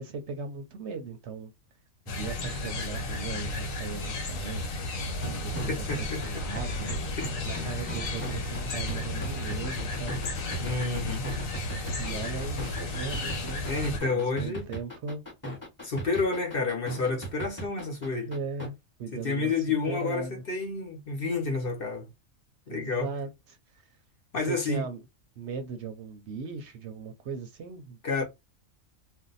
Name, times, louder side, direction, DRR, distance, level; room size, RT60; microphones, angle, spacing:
voice 1, 0.0-1.5 2.1-7.2 7.5-10.2 12.0-13.7 14.1-15.2 18.3-20.4 22.7-23.8 24.4-25.0 25.4-28.2, right 5 dB, 65° right, 0.8 m, -38 dB
sound 1, 2.1-14.0, left 2 dB, 85° left, 1.3 m, -33 dB
sound 2, 5.1-18.7, equal, 15° left, 1.1 m, -38 dB
voice 2, 5.7-6.4 7.2-7.3 10.6-11.3 13.6-14.7 15.8-18.3 19.1-22.1 22.7-23.1 24.3-24.8 28.0-28.2, left 4 dB, 50° left, 0.9 m, -30 dB
2.6 x 2.2 x 3.9 m
omnidirectional pair, 1.3 m